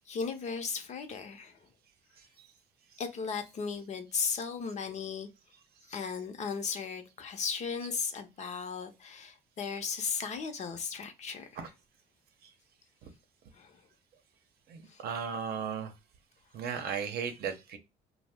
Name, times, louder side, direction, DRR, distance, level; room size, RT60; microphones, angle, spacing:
voice 1, 0.0-1.6 3.0-5.3 5.9-11.5 13.5-13.8 14.9-15.0, left 5 dB, 45° left, 0.6 m, -36 dB
voice 2, 14.7-15.9 16.5-17.8, right 7 dB, 65° right, 0.7 m, -35 dB
2.6 x 2.0 x 3.3 m
cardioid pair, 110°, 17 cm